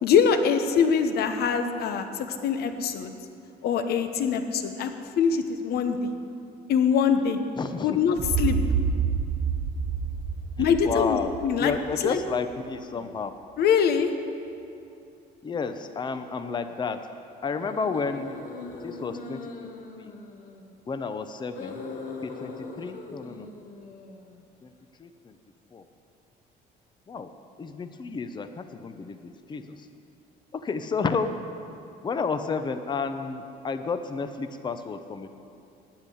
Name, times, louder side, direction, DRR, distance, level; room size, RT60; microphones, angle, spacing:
voice 1, 0.0-3.1 3.6-4.9 5.2-6.1 6.7-7.4 7.8-8.6 10.6-11.7 12.0-12.2 13.6-14.1, left 7 dB, 70° left, 8 dB, 1.0 m, -23 dB
voice 2, 7.6-8.0 10.6-11.3 11.6-13.3 15.4-17.1 17.4-18.3 18.8-19.7 20.0-20.1 20.9-21.8 22.2-23.5 24.6-24.7 25.0-25.3 25.7-25.8 27.1-27.3 27.6-29.9 30.5-31.4 32.0-35.3, left 5 dB, 25° left, 9 dB, 0.7 m, -31 dB
sound 1, 8.2-12.0, right 6 dB, 45° right, 0.6 m, -28 dB
sound 2, 12.8-13.1 13.7-13.8 17.5-20.8 21.4-24.4, left 4 dB, 50° left, 1.4 m, -41 dB
9.8 x 8.8 x 8.6 m, 2.7 s
cardioid pair, 110°, 17 cm